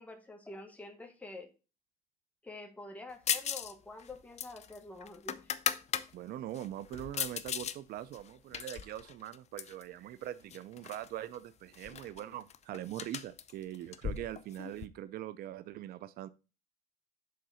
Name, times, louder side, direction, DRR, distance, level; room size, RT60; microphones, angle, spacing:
voice 1, 0.0-1.5 2.4-5.4, left 2 dB, 10° left, 1.4 m, -47 dB
sound 1, 3.3-3.7 4.0-6.1 6.5-7.8 8.1-9.8 10.5-11.1 11.3-11.4 11.7-14.9, left 8 dB, 40° left, 0.5 m, -37 dB
voice 2, 6.1-16.3, right 12 dB, 65° right, 0.4 m, -42 dB
6.4 x 3.9 x 5.5 m
cardioid pair, 110°, 17 cm